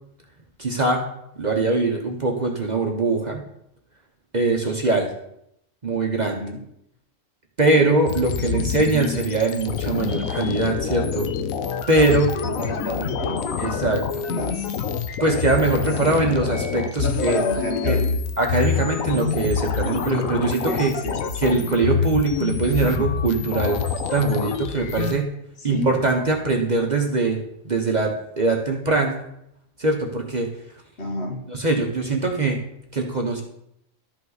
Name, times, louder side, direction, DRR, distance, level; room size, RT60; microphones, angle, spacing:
voice 1, 0.6-1.0 1.4-3.4 4.3-5.1 5.8-6.4 7.6-11.3 11.9-12.2 13.6-14.3 15.2-17.4 17.9-18.0 18.4-20.9 21.4-23.8 24.1-25.3 25.6-27.4 27.6-29.2 29.8-30.5 31.5-32.6 32.9-33.4, right 3 dB, 35° right, 1 dB, 1.0 m, -22 dB
voice 2, 6.3-6.6 7.6-7.8 8.4-8.8 12.1-13.7 14.3-14.9 16.0-16.2 17.0-18.2 20.7-21.7 25.6-26.0 31.0-31.4, left 1 dB, 55° left, 3 dB, 1.5 m, -30 dB
sound 1, 8.1-25.1, left 7 dB, 90° left, 1.2 m, -26 dB
12.0 x 5.7 x 4.0 m, 0.77 s
omnidirectional pair, 1.4 m